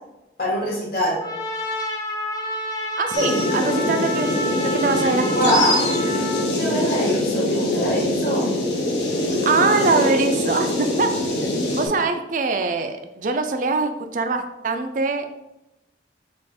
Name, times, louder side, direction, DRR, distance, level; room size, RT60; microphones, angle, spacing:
voice 1, 0.4-1.2 5.3-5.8 6.4-8.5, equal, 50° left, -5 dB, 1.5 m, -23 dB
Trumpet, 1.2-6.5, left 1 dB, 20° left, 0.6 m, -29 dB
voice 2, 3.0-4.4 4.7-5.5 9.4-11.1 11.7-15.4, right 3 dB, 45° right, 7 dB, 0.3 m, -23 dB
sound 1, 3.1-11.9, left 1 dB, 70° left, 0.9 m, -23 dB
4.2 x 2.4 x 4.2 m, 0.94 s
head